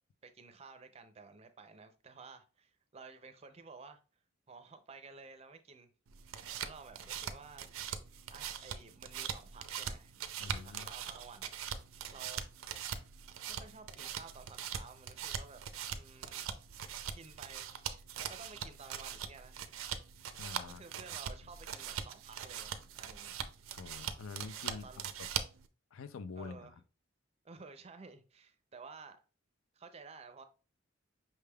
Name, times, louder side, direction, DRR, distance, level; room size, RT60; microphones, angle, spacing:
voice 1, 0.2-4.0 4.5-5.9 6.6-7.7 8.3-10.1 10.4-11.5 12.1-12.5 13.5-15.6 15.9-16.5 17.1-19.6 20.6-23.4 24.7-25.0 26.3-26.8 27.4-29.2 29.7-30.4, right 4 dB, 30° right, 0.4 m, -53 dB
sound 1, 6.1-25.7, right 8 dB, 90° right, 0.4 m, -42 dB
voice 2, 10.4-10.9 20.3-20.8 21.1-21.2 23.8-25.3 25.9-26.7, left 4 dB, 85° left, 0.4 m, -46 dB
5.6 x 3.4 x 2.2 m
head